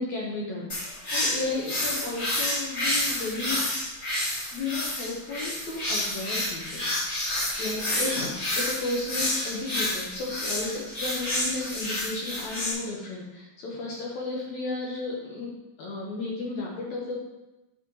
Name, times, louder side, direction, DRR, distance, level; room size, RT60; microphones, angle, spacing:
voice 1, 0.0-3.7 4.5-6.9 7.6-15.5 15.8-17.2, left 3 dB, 60° left, -3 dB, 2.1 m, -33 dB
sound 1, 0.7-12.7, left 1 dB, 30° left, 2.7 m, -29 dB
9.1 x 7.5 x 3.1 m, 1.0 s
omnidirectional pair, 4.4 m